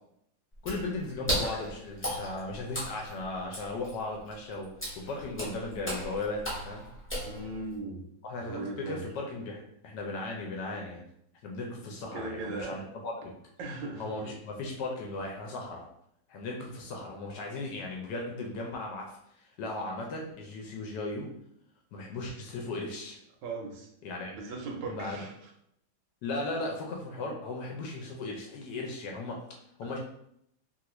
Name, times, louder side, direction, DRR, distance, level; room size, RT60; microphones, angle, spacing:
Water / Splash splatter, 0.5-7.8, equal, 10° left, 0.5 m, -37 dB
voice 1, 0.6-4.7 5.0-6.9 8.2-11.0 11.4-13.3 14.0-15.9 16.3-21.3 21.9-23.2 24.0-24.3 24.9-25.3 26.2-29.4 29.8-30.0, left 2 dB, 75° left, 0 dB, 1.1 m, -37 dB
voice 2, 7.3-8.0 8.4-9.1 12.1-12.8 13.6-14.3 23.4-23.9 24.3-25.5 29.8-29.9, right 3 dB, 80° right, 1 dB, 1.2 m, -38 dB
3.1 x 2.4 x 2.9 m, 0.74 s
omnidirectional pair, 2.1 m